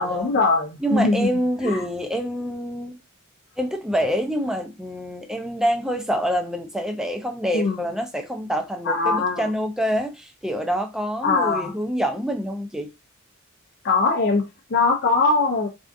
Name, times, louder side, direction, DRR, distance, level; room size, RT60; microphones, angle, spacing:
voice 1, 0.0-1.3 1.6-1.9 7.5-7.9 8.8-9.5 11.2-11.7 13.8-14.4 14.7-15.7, left 3 dB, 55° left, 0.5 m, -21 dB
voice 2, 0.8-3.0 3.6-12.9, equal, 5° right, 0.4 m, -26 dB
3.5 x 2.4 x 2.6 m
head